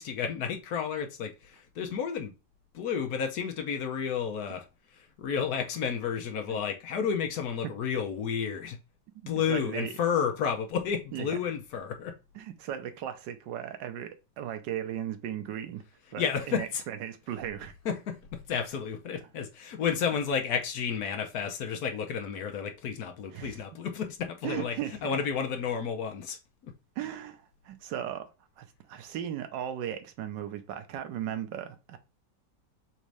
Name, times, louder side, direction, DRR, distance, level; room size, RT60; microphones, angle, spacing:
voice 1, 0.0-2.3 2.7-4.6 4.9-8.8 9.3-12.1 16.2-16.8 17.8-18.2 18.5-24.7 25.0-26.4, left 7 dB, 65° left, 1.2 m, -31 dB
voice 2, 9.1-9.9 11.1-11.4 12.3-15.8 16.1-17.7 19.1-19.2 23.3-23.6 24.4-25.2 27.0-28.3 28.6-32.0, right 10 dB, 85° right, 1.4 m, -37 dB
4.2 x 2.7 x 4.7 m
omnidirectional pair, 1.9 m